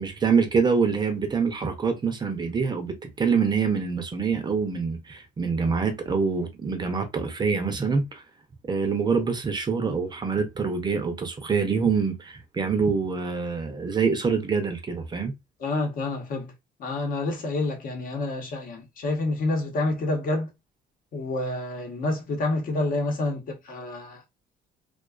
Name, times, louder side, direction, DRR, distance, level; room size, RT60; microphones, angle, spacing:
voice 1, 0.0-8.2 8.7-15.3, right 5 dB, 25° right, 0.5 m, -25 dB
voice 2, 15.6-16.5 16.8-20.5 21.1-24.2, left 2 dB, 55° left, 0.9 m, -28 dB
2.4 x 2.3 x 2.3 m
cardioid pair, 110°, 17 cm